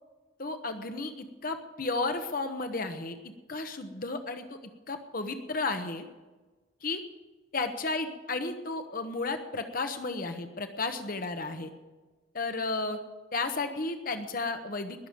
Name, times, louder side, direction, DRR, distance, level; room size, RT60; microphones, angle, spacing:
voice 1, 0.4-3.2 3.5-4.4 4.9-6.0 6.8-7.0 7.5-11.7 12.3-13.0 13.3-15.1, left 3 dB, 45° left, 7 dB, 1.1 m, -33 dB
20.5 x 7.0 x 9.2 m, 1.2 s
head